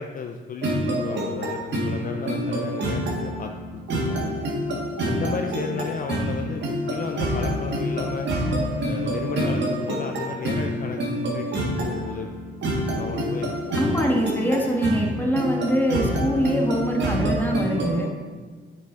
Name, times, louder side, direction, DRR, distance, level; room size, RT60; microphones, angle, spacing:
voice 1, 0.0-4.3 5.0-8.3 8.8-11.0 11.3-12.3 12.9-14.1, left 5 dB, 45° left, 4 dB, 0.5 m, -34 dB
sound 1, 0.6-18.1, equal, 65° right, 1.7 m, -27 dB
voice 2, 13.8-18.1, equal, 10° left, 0 dB, 1.4 m, -24 dB
8.9 x 4.9 x 3.8 m, 1.4 s
cardioid pair, 90°, 20 cm